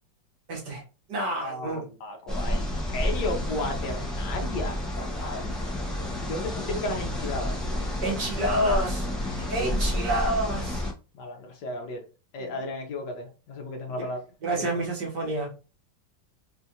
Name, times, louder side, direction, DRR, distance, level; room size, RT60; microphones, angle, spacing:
voice 1, 0.5-0.8 1.1-1.8 8.0-9.1 9.3-10.9 12.4-12.6 14.0-14.1 14.4-15.5, right 1 dB, 65° right, -2 dB, 1.8 m, -28 dB
voice 2, 1.4-2.7 2.9-5.5 6.3-7.6 11.1-12.0 12.3-14.2 14.6-14.8, left 2 dB, 70° left, 2 dB, 1.5 m, -34 dB
sound 1, 2.3-10.9, left 1 dB, ahead, 0.4 m, -30 dB
4.3 x 2.5 x 2.8 m, 0.33 s
omnidirectional pair, 2.0 m